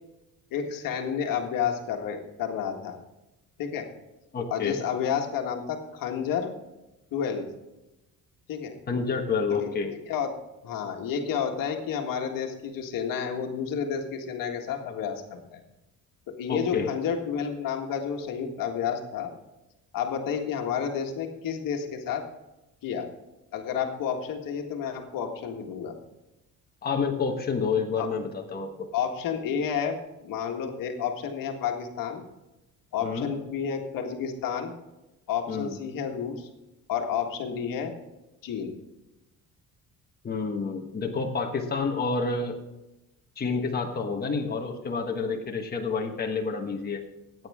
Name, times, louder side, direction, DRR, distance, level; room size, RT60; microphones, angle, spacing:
voice 1, 0.5-3.0 3.6-3.9 4.5-6.5 7.1-7.5 8.5-8.7 9.5-9.7 10.1-10.3 10.6-15.6 16.4-19.3 19.9-22.3 22.8-23.1 23.5-26.0 28.0-28.1 28.9-30.0 30.2-32.2 32.9-34.7 35.3-36.5 36.9-37.9 38.4-38.7, left 7 dB, 70° left, 3 dB, 1.8 m, -30 dB
voice 2, 4.3-4.8 8.9-9.9 16.5-16.9 26.8-28.9 33.0-33.3 35.5-35.8 40.2-42.6 43.4-47.0, left 5 dB, 25° left, 1 dB, 1.4 m, -29 dB
15.0 x 9.2 x 3.6 m, 0.97 s
cardioid pair, 125°, 35 cm